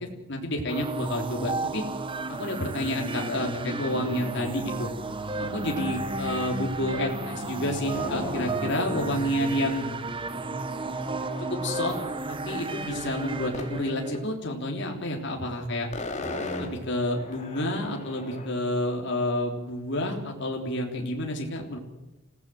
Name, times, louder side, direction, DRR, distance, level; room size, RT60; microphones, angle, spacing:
voice 1, 0.3-1.8 2.3-4.9 5.4-9.9 11.5-11.9 12.3-15.9 16.6-21.8, left 1 dB, 55° left, 1 dB, 3.4 m, -29 dB
sound 1, 0.7-14.2, right 2 dB, 25° right, 1.3 m, -33 dB
sound 2, 7.9-8.7 9.1-9.2 9.3-12.1 13.5-13.8 14.1-14.2 15.3-15.5 15.8-18.5, left 2 dB, 35° left, 3.0 m, -38 dB
29.0 x 16.5 x 7.7 m, 0.99 s
head